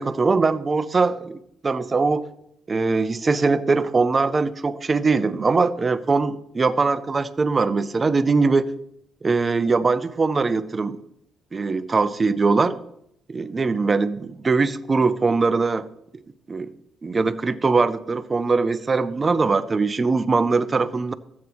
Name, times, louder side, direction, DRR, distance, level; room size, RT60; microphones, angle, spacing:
voice 1, 0.0-2.3 2.7-8.7 9.2-11.0 11.5-12.8 13.3-15.9 16.5-16.7 17.0-21.1, right 4 dB, 30° right, 13 dB, 0.6 m, -21 dB
13.5 x 8.3 x 3.1 m, 0.76 s
cardioid pair, 90°, 0 cm